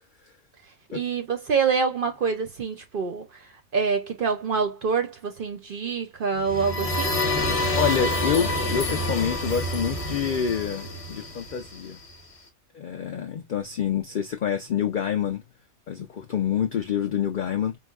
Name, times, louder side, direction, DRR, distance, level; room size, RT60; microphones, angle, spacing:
voice 1, 0.9-3.3 3.7-7.1, right 5 dB, 60° right, 0.6 m, -26 dB
sound 1, 6.4-12.1, left 1 dB, 30° left, 0.7 m, -27 dB
voice 2, 7.7-12.0 12.7-15.4 15.9-17.8, left 8 dB, 90° left, 0.4 m, -27 dB
4.7 x 2.4 x 2.3 m
omnidirectional pair, 1.4 m